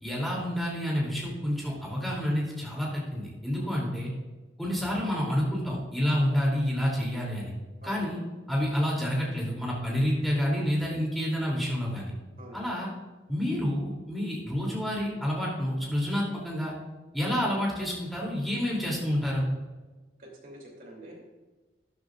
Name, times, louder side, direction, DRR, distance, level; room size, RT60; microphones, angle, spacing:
voice 1, 0.0-4.1 4.6-7.5 7.8-8.2 8.5-12.1 12.5-12.9 13.3-16.7 17.1-19.4, equal, ahead, -4 dB, 2.8 m, -29 dB
voice 2, 20.2-21.2, right 1 dB, 50° right, -1 dB, 2.7 m, -46 dB
12.5 x 10.5 x 2.4 m, 1.2 s
head